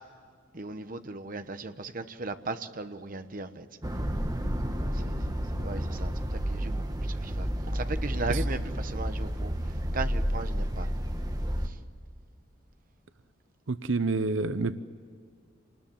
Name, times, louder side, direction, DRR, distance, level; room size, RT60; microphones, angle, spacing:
voice 1, 0.5-3.7 4.8-5.2 5.6-9.5 9.9-10.9, right 3 dB, 45° right, 9 dB, 1.1 m, -37 dB
sound 1, 3.8-11.7, equal, 20° right, 1.6 m, -31 dB
voice 2, 13.7-14.8, right 3 dB, 80° right, 12 dB, 0.8 m, -28 dB
27.0 x 20.5 x 9.3 m, 2.1 s
head